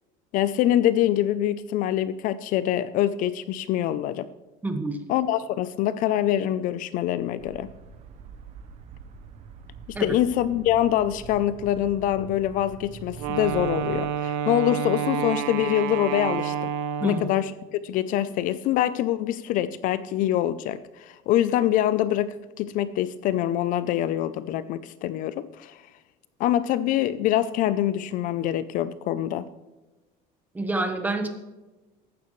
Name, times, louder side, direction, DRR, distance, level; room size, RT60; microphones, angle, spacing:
voice 1, 0.3-4.3 5.1-7.7 9.9-16.7 17.0-25.8 26.4-29.4, left 12 dB, 50° left, 15 dB, 0.5 m, -25 dB
voice 2, 4.6-5.0 9.9-10.1 17.0-17.3 30.5-31.3, right 2 dB, 10° right, 6 dB, 1.1 m, -27 dB
sound 1, 7.4-14.0, right 5 dB, 40° right, 0.9 m, -44 dB
Wind instrument woodwind instrument, 13.2-17.5, right 8 dB, 75° right, 1.0 m, -29 dB
14.5 x 11.5 x 3.2 m, 1.1 s
cardioid pair, 165°, 17 cm